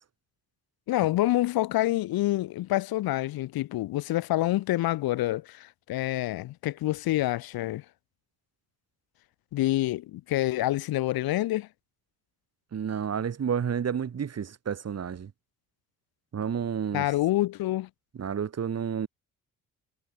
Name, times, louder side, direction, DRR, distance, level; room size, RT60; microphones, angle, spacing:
voice 1, 0.9-7.8 9.5-11.7 16.9-17.9, left 16 dB, 70° left, 3.0 m, -27 dB
voice 2, 12.7-15.3 16.3-17.1 18.2-19.1, right 7 dB, 40° right, 2.2 m, -30 dB
hypercardioid pair, 55°, 37 cm